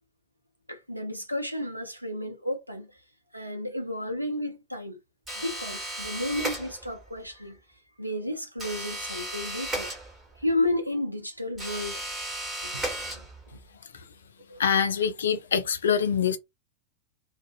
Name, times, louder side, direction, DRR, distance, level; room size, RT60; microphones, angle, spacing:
voice 1, 0.7-2.9 3.3-5.0 5.4-7.6 8.0-10.0 10.4-12.0 12.6-13.3 14.5-14.6, left 1 dB, 85° right, 0.5 m, -32 dB
sound 1, 5.3-7.1 8.6-10.5 11.6-13.6, right 1 dB, 15° right, 1.3 m, -35 dB
voice 2, 14.6-16.4, left 7 dB, 65° left, 0.4 m, -24 dB
2.4 x 2.4 x 2.2 m
figure-of-eight pair, 90°, 0 cm